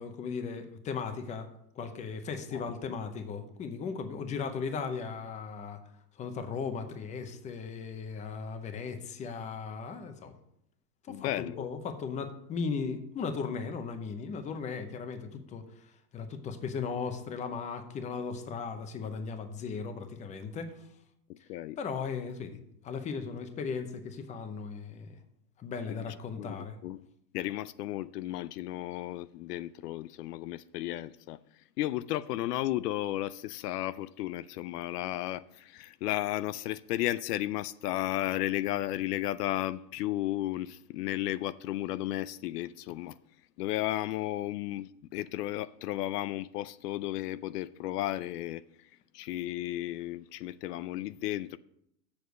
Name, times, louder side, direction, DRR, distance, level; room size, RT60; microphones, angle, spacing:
voice 1, 0.0-1.5 1.8-5.8 6.2-10.3 11.0-20.7 21.8-22.6 22.8-25.1 25.6-26.8, left 5 dB, 15° left, 0.7 m, -37 dB
voice 2, 2.5-3.0 11.1-11.7 21.3-21.8 25.9-27.1 27.3-31.4 31.8-43.2 43.6-51.6, left 15 dB, 75° left, 0.5 m, -34 dB
7.1 x 6.4 x 6.3 m
supercardioid pair, 145°, 48 cm